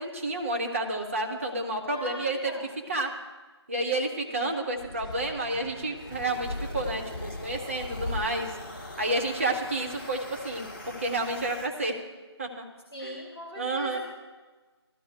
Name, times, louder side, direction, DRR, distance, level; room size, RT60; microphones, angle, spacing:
voice 1, 0.0-2.5 2.9-3.1 3.7-8.5 9.0-12.0 12.4-12.6 13.0-13.2 13.6-14.0, right 2 dB, 30° right, 1 dB, 1.2 m, -30 dB
voice 2, 1.9-2.7 12.9-14.0, equal, 5° left, -13 dB, 0.5 m, -39 dB
sound 1, 4.8-9.7, left 1 dB, 40° left, 1.1 m, -39 dB
sound 2, 6.1-11.7, left 2 dB, 25° left, 1.2 m, -43 dB
14.5 x 12.5 x 4.8 m, 1.3 s
figure-of-eight pair, 160°, 15 cm